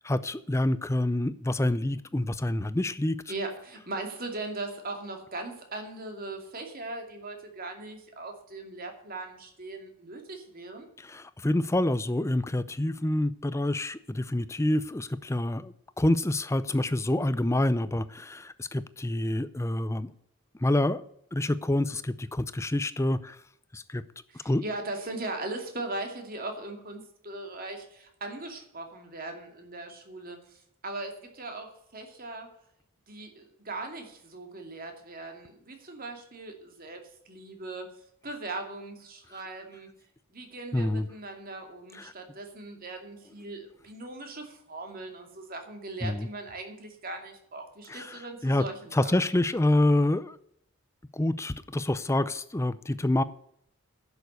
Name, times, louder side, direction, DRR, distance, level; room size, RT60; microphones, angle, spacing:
voice 1, 0.0-3.2 11.0-20.1 20.6-21.0 21.3-23.4 23.7-24.0 24.4-24.6 40.7-41.1 41.9-42.1 46.0-46.3 47.9-48.6 48.9-50.4 51.1-53.2, left 1 dB, 15° left, 14 dB, 0.5 m, -27 dB
voice 2, 3.3-10.9 24.3-32.5 33.1-37.0 37.3-37.9 38.2-39.9 40.3-49.1, right 2 dB, 40° right, 4 dB, 2.4 m, -39 dB
10.5 x 7.1 x 8.0 m, 0.71 s
head